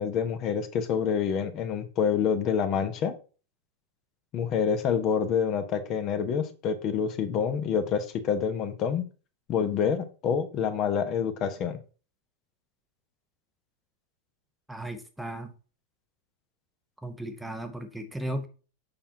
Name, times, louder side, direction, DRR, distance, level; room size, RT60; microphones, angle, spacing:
voice 1, 0.0-3.1 4.3-9.1 9.5-11.8, left 7 dB, 35° left, 9 dB, 0.9 m, -27 dB
voice 2, 14.7-15.5 17.0-18.5, right 1 dB, 5° right, 7 dB, 0.8 m, -35 dB
6.9 x 5.6 x 2.8 m, 0.35 s
figure-of-eight pair, 90°, 0 cm